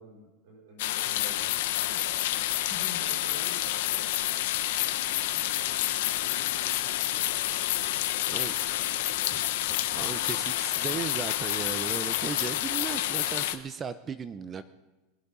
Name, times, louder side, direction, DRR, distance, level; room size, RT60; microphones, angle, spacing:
voice 1, 0.0-4.5 4.8-6.0 6.3-7.9 8.3-9.5 9.9-10.4, left 1 dB, 75° right, -1 dB, 4.4 m, -49 dB
sound 1, 0.8-13.6, left 14 dB, 75° left, 0.9 m, -29 dB
sound 2, 1.1-13.3, left 1 dB, 5° left, 3.1 m, -56 dB
voice 2, 9.9-14.6, right 6 dB, 25° right, 13 dB, 0.6 m, -36 dB
22.0 x 8.3 x 5.5 m, 1.1 s
supercardioid pair, 125°, 0 cm